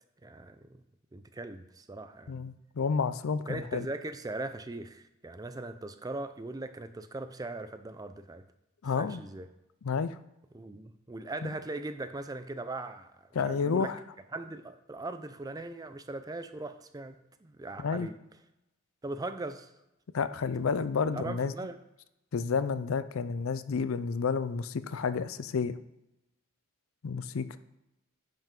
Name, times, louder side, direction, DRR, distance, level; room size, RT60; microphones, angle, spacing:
voice 1, 0.2-0.8 1.1-2.3 3.5-8.4 8.9-9.5 10.5-13.9 14.3-18.2 19.0-19.7 20.6-20.8 21.1-21.8, right 2 dB, 15° right, 10 dB, 0.4 m, -40 dB
voice 2, 2.3-3.9 8.8-9.2 9.8-10.2 11.4-11.5 13.3-14.0 17.8-18.1 20.1-21.5 22.3-25.7 27.0-27.6, left 5 dB, 75° left, 13 dB, 0.5 m, -30 dB
10.5 x 5.6 x 3.7 m, 0.89 s
head